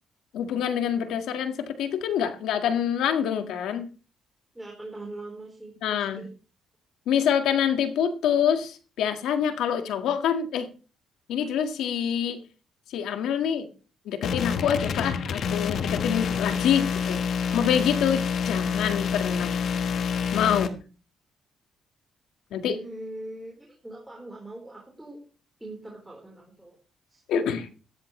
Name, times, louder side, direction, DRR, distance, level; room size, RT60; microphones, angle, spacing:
voice 1, 0.3-3.9 5.8-6.2 7.1-10.7 11.3-12.4 12.9-13.7 14.1-17.2 17.5-19.6 20.3-20.8 22.5-22.8 27.3-27.7, left 8 dB, 85° left, 7 dB, 1.8 m, -26 dB
voice 2, 4.5-6.3 22.7-25.2 25.6-26.8 27.1-27.2, right 1 dB, 10° right, -1 dB, 4.3 m, -41 dB
sound 1, 14.2-20.7, left 6 dB, 65° left, 1.5 m, -27 dB
15.5 x 13.5 x 3.2 m, 0.35 s
cardioid pair, 90°, 0 cm